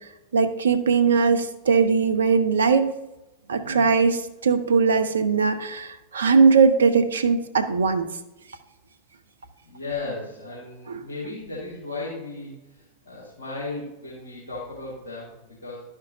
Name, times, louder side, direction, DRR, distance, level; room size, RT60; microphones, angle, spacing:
voice 1, 0.3-2.9 3.5-8.1, right 5 dB, 70° right, 9 dB, 0.6 m, -20 dB
voice 2, 9.6-15.8, left 3 dB, 70° left, -7 dB, 2.1 m, -35 dB
11.5 x 5.2 x 2.8 m, 0.97 s
figure-of-eight pair, 90°, 0 cm